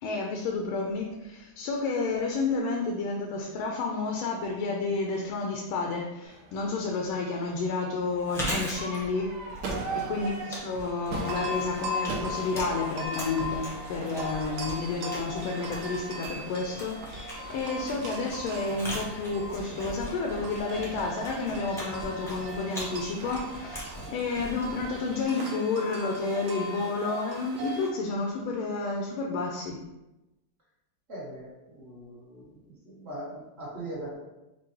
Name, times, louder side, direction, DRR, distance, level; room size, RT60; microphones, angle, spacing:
voice 1, 0.0-9.5 9.9-29.8, left 3 dB, 80° left, 0 dB, 1.4 m, -31 dB
Crowd / Fireworks, 6.2-25.2, right 3 dB, 65° right, 1.2 m, -43 dB
Chewing mastication, 8.1-25.0, equal, ahead, 0.5 m, -40 dB
voice 2, 9.7-10.1 31.1-32.6 32.8-34.1, right 1 dB, 35° right, -7 dB, 1.4 m, -41 dB
sound 1, 11.1-27.9, left 1 dB, 80° right, 0.7 m, -39 dB
4.6 x 2.2 x 4.5 m, 0.99 s
omnidirectional pair, 2.2 m